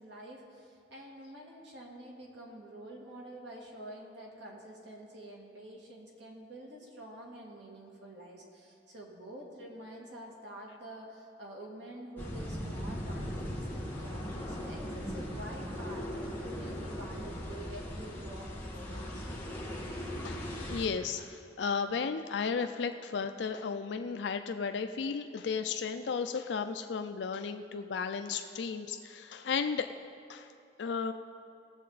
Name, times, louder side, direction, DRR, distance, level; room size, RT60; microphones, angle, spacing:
voice 1, 0.0-19.3, right 1 dB, 75° right, -1 dB, 2.0 m, -48 dB
sound 1, 12.2-20.9, equal, 10° left, 1.6 m, -39 dB
voice 2, 20.2-29.9 30.3-30.5 30.8-31.1, left 5 dB, 70° left, 7 dB, 0.4 m, -34 dB
18.5 x 7.4 x 4.0 m, 2.6 s
head